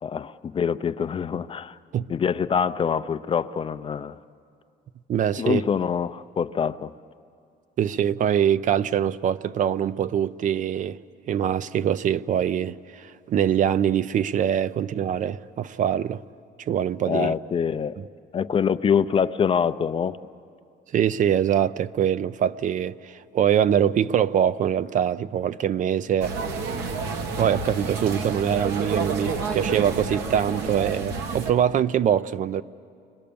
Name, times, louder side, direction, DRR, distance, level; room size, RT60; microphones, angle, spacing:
voice 1, 0.0-1.8 2.1-4.2 5.4-6.9 17.1-18.0 18.3-20.2, left 7 dB, 30° left, 0.5 m, -25 dB
voice 2, 5.1-5.6 7.8-11.0 11.3-16.2 16.6-17.3 20.9-26.4 27.4-32.6, right 9 dB, 50° right, 0.5 m, -23 dB
sound 1, 26.2-31.5, right 4 dB, 80° right, 1.9 m, -29 dB
29.5 x 22.0 x 6.9 m
cardioid pair, 110°, 17 cm